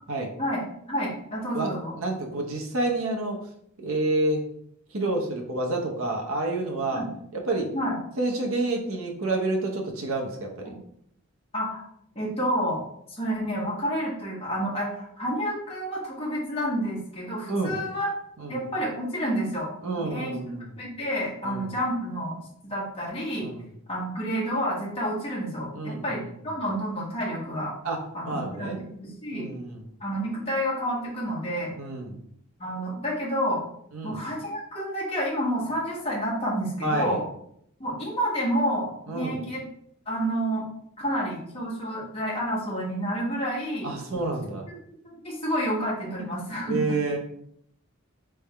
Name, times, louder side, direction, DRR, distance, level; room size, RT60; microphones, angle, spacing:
voice 1, 0.4-1.9 6.9-7.1 7.7-8.0 10.6-10.8 11.5-11.8 12.1-12.8 13.1-18.1 18.5-19.7 20.0-20.3 20.8-23.5 23.9-27.7 28.1-28.7 29.0-29.5 30.0-31.7 32.6-33.6 34.0-37.2 37.8-39.6 40.1-40.7 41.0-43.9 44.7-44.8 45.0-47.0, equal, 25° left, -5 dB, 1.3 m, -29 dB
voice 2, 1.5-3.5 3.8-4.4 4.9-7.0 7.3-7.7 8.2-10.7 17.5-17.8 18.4-18.6 19.8-20.8 21.4-21.7 23.4-23.7 25.7-26.2 27.8-28.8 29.3-29.8 31.8-32.2 33.9-34.2 36.8-37.2 39.1-39.4 43.8-44.6 46.2-47.2, right 2 dB, 70° right, 1 dB, 0.8 m, -29 dB
3.5 x 3.4 x 3.3 m, 0.70 s
head